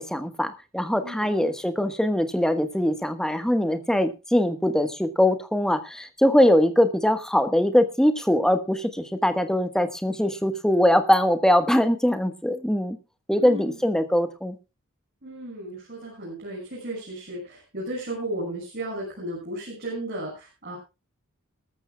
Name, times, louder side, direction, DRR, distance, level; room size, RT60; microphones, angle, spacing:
voice 1, 0.0-13.0 13.3-14.6, left 1 dB, 5° left, 9 dB, 1.3 m, -22 dB
voice 2, 1.0-1.3 13.3-13.8 15.2-20.8, right 1 dB, 45° right, -3 dB, 6.1 m, -34 dB
20.5 x 13.5 x 2.3 m, 0.28 s
head